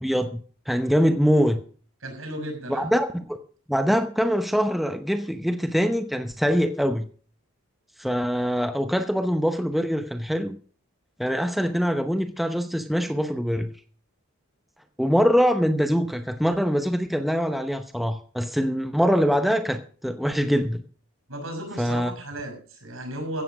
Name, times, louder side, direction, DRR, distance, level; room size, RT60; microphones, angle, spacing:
voice 1, 0.0-1.6 2.7-3.4 3.7-7.1 8.0-10.6 11.2-13.7 15.0-20.8 21.8-22.1, equal, ahead, 7 dB, 0.7 m, -23 dB
voice 2, 2.0-2.9 21.3-23.4, right 1 dB, 75° right, 4 dB, 6.2 m, -34 dB
15.0 x 8.4 x 6.3 m, 0.43 s
head